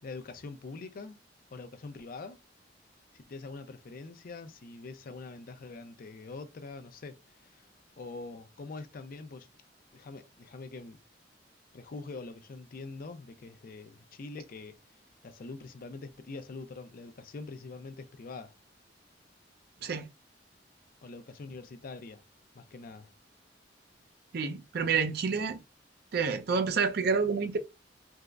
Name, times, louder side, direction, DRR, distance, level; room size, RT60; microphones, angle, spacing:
voice 1, 0.0-1.2 1.5-2.4 3.1-7.7 8.0-9.5 9.9-11.0 11.7-14.8 15.2-18.5 21.0-22.2 22.5-23.1, left 3 dB, 50° left, 0.4 m, -44 dB
voice 2, 24.3-25.6 26.1-27.6, right 5 dB, 60° right, 0.5 m, -28 dB
3.5 x 2.0 x 2.3 m
head